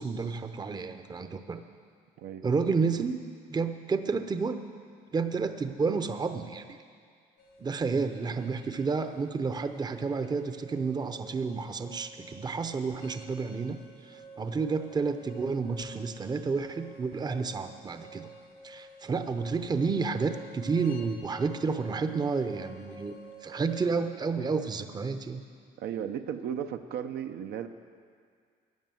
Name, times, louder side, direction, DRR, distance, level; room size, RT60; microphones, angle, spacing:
voice 1, 0.0-1.6 2.4-3.2 3.5-4.6 5.1-6.8 7.6-18.3 18.6-23.2 23.4-25.4, right 4 dB, 25° right, 9 dB, 0.7 m, -30 dB
sound 1, 7.4-23.9, right 2 dB, 70° left, 1.7 m, -50 dB
voice 2, 25.8-27.7, right 9 dB, 70° right, 7 dB, 0.7 m, -35 dB
13.0 x 10.5 x 7.7 m, 2.1 s
cardioid pair, 110°, 17 cm